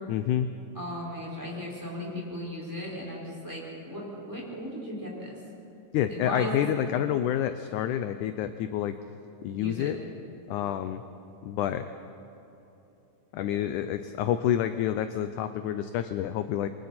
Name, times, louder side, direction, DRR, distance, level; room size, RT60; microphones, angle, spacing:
voice 1, 0.1-0.5 5.9-9.0 9.4-10.0 10.5-11.0 11.4-11.9 13.3-16.7, left 10 dB, 80° left, 10 dB, 1.9 m, -28 dB
voice 2, 0.7-5.4 6.1-6.9 9.6-9.9, left 1 dB, 5° right, -4 dB, 5.0 m, -36 dB
28.5 x 23.5 x 4.4 m, 3.0 s
omnidirectional pair, 4.0 m